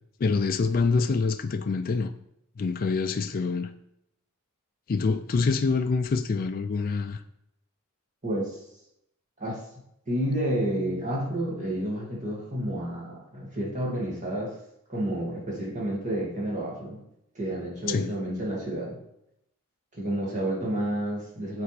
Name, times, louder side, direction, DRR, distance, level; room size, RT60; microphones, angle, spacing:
voice 1, 0.2-2.1 2.6-3.7 4.9-7.2 17.9-18.1, left 4 dB, 40° left, 0.4 m, -26 dB
voice 2, 8.2-8.6 9.4-9.6 10.1-14.6 14.9-17.0 17.4-19.0 19.9-21.6, right 1 dB, 35° right, 2.0 m, -30 dB
8.2 x 4.4 x 3.3 m
head